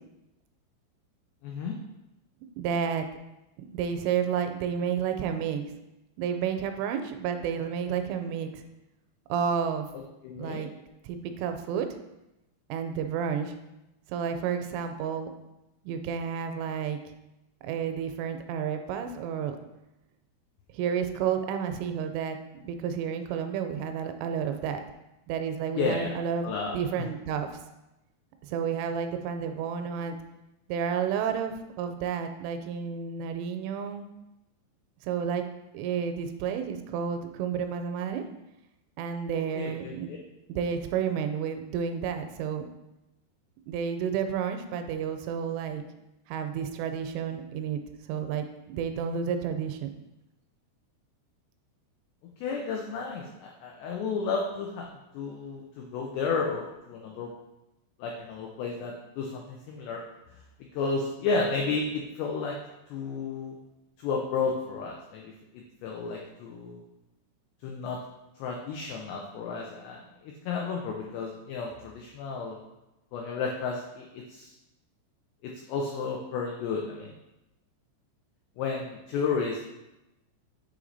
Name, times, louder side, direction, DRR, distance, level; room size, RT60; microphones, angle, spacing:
voice 1, 1.4-1.8 9.9-10.7 25.8-26.1 26.4-26.8 39.6-40.2 52.4-54.9 55.1-57.3 58.0-60.0 60.7-62.6 62.9-63.6 64.0-66.8 67.6-68.0 68.4-72.6 73.1-74.5 75.4-77.1 78.6-79.6, left 4 dB, 85° left, 0 dB, 2.4 m, -32 dB
voice 2, 2.6-3.1 3.7-5.7 6.2-8.6 9.3-9.9 10.4-10.7 11.0-11.9 12.7-13.5 14.1-15.3 15.9-17.0 17.6-19.6 20.7-22.4 22.6-24.8 25.3-27.6 28.5-30.2 30.7-34.1 35.0-35.4 35.7-38.2 39.0-40.1 40.5-42.7 43.7-45.8 46.3-47.8 48.1-49.9, right 7 dB, 85° right, 6 dB, 2.9 m, -31 dB
8.9 x 3.1 x 3.9 m, 0.94 s
omnidirectional pair, 5.7 m